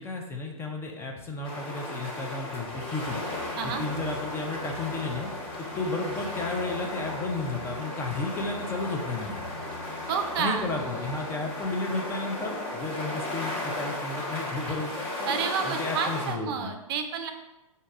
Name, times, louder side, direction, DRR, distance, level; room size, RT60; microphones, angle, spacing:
voice 1, 0.0-5.3 5.6-9.6 10.4-15.1 15.6-16.7, left 3 dB, 15° left, 1 dB, 0.4 m, -33 dB
sound 1, 1.4-16.3, left 1 dB, 30° left, 1.4 m, -35 dB
sound 2, 2.7-11.3, left 1 dB, 80° left, 1.1 m, -44 dB
voice 2, 10.1-10.6 15.2-17.3, right 6 dB, 45° right, 6 dB, 0.5 m, -30 dB
5.2 x 2.7 x 3.6 m, 0.98 s
figure-of-eight pair, 115°, 18 cm